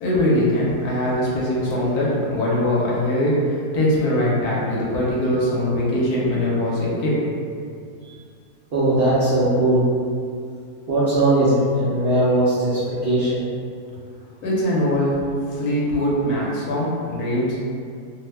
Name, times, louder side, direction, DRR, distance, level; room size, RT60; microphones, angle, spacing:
voice 1, 0.0-7.4 14.4-15.2 15.5-17.6, left 1 dB, 70° left, -5 dB, 1.1 m, -22 dB
voice 2, 8.7-9.9 10.9-13.4, right 1 dB, 85° right, -10 dB, 0.5 m, -19 dB
2.7 x 2.1 x 3.2 m, 2.3 s
omnidirectional pair, 1.8 m